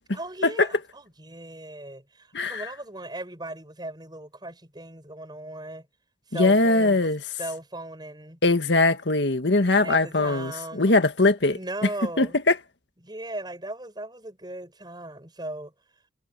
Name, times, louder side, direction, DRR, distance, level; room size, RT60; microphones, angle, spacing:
voice 1, 0.1-5.9 6.3-7.1 7.4-8.4 9.8-11.0 11.5-12.4 13.0-15.7, right 1 dB, 25° right, 7.4 m, -37 dB
voice 2, 6.3-7.2 8.4-11.6 12.2-12.6, left 2 dB, 80° left, 1.8 m, -21 dB
head